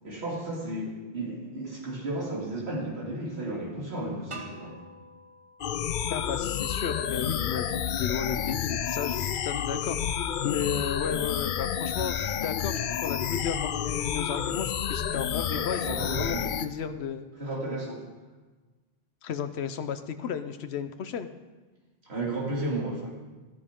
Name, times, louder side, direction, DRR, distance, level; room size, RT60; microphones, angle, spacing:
voice 1, 0.0-4.7 6.8-7.0 15.5-16.4 17.4-18.0 22.0-23.1, right 1 dB, 80° right, -3 dB, 3.0 m, -33 dB
sound 1, 4.3-7.2, right 2 dB, 30° right, 1.0 m, -47 dB
sound 2, 5.6-16.7, left 9 dB, 60° left, 0.6 m, -30 dB
voice 2, 6.1-10.0 10.4-16.4 16.6-17.3 19.2-21.3, left 7 dB, 85° left, 10 dB, 1.0 m, -33 dB
13.5 x 12.5 x 3.7 m, 1.2 s
omnidirectional pair, 1.1 m